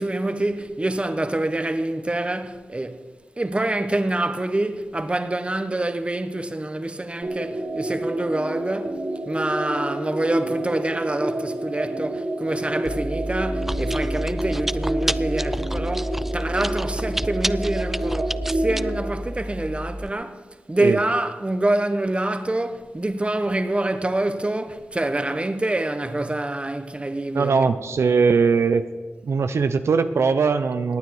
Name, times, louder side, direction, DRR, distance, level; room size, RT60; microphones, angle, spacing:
voice 1, 0.0-3.0 3.4-27.7, right 1 dB, 25° right, 1.1 m, -26 dB
sound 1, 7.2-19.1, right 1 dB, 60° right, 2.3 m, -29 dB
Chewing mastication, 12.8-20.1, equal, 5° right, 0.4 m, -29 dB
voice 2, 27.3-28.8 29.2-31.0, right 5 dB, 80° right, 0.5 m, -20 dB
18.5 x 9.3 x 4.8 m
cardioid pair, 60°, 5 cm